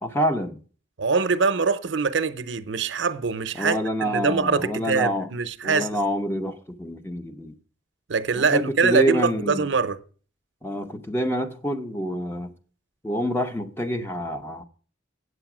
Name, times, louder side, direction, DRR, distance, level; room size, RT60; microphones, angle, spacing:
voice 1, 0.0-0.6 3.6-5.3 5.6-7.5 8.3-9.7 10.6-12.5 13.0-14.6, equal, 10° left, 0.7 m, -27 dB
voice 2, 1.0-5.9 8.1-10.0, right 5 dB, 70° right, 0.7 m, -23 dB
8.2 x 8.1 x 6.0 m
head